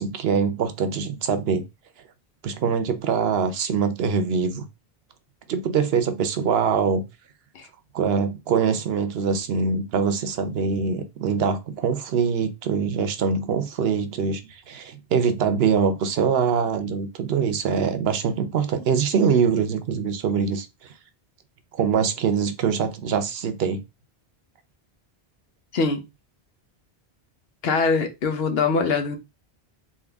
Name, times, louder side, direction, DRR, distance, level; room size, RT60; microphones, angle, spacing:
voice 1, 0.0-1.6 2.4-4.7 5.5-7.0 7.9-20.9 21.7-23.8, right 6 dB, 70° right, 0.9 m, -23 dB
voice 2, 25.7-26.0 27.6-29.2, left 4 dB, 70° left, 1.0 m, -22 dB
3.7 x 2.6 x 3.4 m
omnidirectional pair, 1.1 m